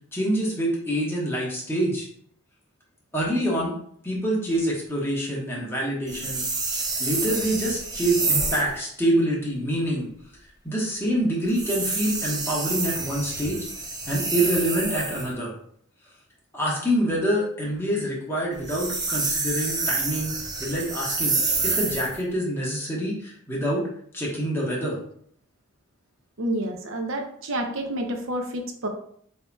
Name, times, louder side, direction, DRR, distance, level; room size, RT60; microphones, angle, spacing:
voice 1, 0.1-2.1 3.1-3.8 4.0-6.4 7.0-10.1 10.6-13.7 14.1-15.5 16.5-20.3 20.6-21.4 21.6-23.8 24.1-25.0, right 1 dB, 10° left, -5 dB, 1.1 m, -26 dB
sound 1, 6.1-8.7 11.5-15.3 18.5-22.2, right 3 dB, 20° right, 0.6 m, -28 dB
voice 2, 26.4-28.9, right 1 dB, 65° right, 4 dB, 0.6 m, -29 dB
6.4 x 2.8 x 2.3 m, 0.64 s
head